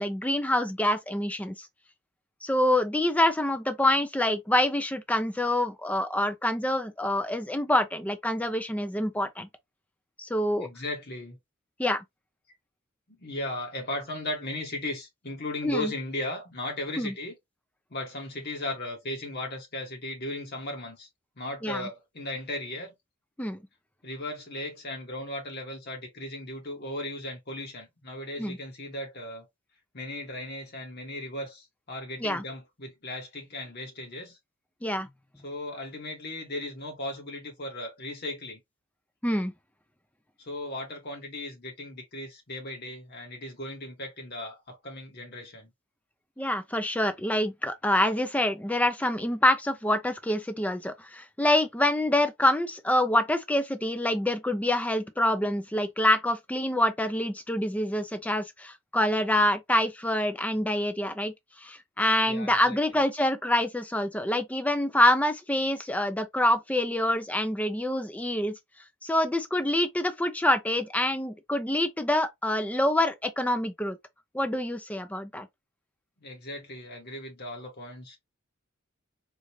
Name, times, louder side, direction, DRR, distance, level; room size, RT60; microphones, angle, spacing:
voice 1, 0.0-1.7 2.4-9.5 10.2-10.7 11.8-12.0 15.6-15.9 17.0-17.1 21.6-21.9 23.4-23.6 28.4-28.6 32.2-32.4 34.8-35.1 39.2-39.5 46.4-61.3 61.6-68.6 69.0-74.0 74.3-75.5, left 1 dB, 5° left, 0.5 m, -26 dB
voice 2, 10.6-11.4 13.1-17.3 17.9-21.1 21.4-22.9 24.0-29.5 29.9-34.4 35.4-38.6 40.4-45.7 62.3-63.0 76.2-78.2, left 1 dB, 55° left, 1.6 m, -37 dB
3.8 x 2.5 x 3.0 m
head